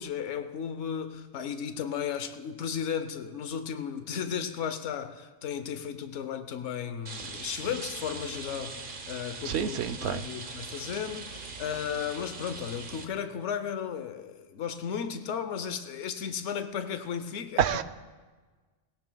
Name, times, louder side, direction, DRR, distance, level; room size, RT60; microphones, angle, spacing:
voice 1, 0.0-8.8 9.1-17.6, left 8 dB, 90° left, 1.0 m, -34 dB
Rain, 7.1-13.0, right 4 dB, 50° right, 1.1 m, -41 dB
voice 2, 9.5-10.2 17.6-17.8, right 8 dB, 75° right, 0.8 m, -27 dB
19.0 x 18.0 x 2.2 m
omnidirectional pair, 1.2 m